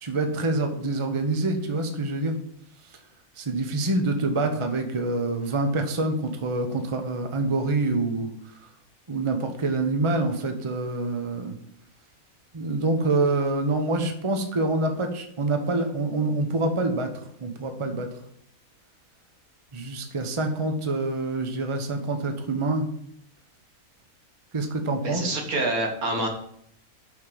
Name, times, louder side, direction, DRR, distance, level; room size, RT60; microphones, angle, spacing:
voice 1, 0.0-2.4 3.4-8.3 9.1-11.5 12.5-17.1 17.4-18.1 19.7-22.9 24.5-25.2, right 2 dB, 25° right, 5 dB, 0.9 m, -26 dB
voice 2, 25.0-26.3, right 2 dB, 75° right, 3 dB, 1.9 m, -26 dB
6.5 x 5.6 x 6.8 m, 0.68 s
omnidirectional pair, 1.5 m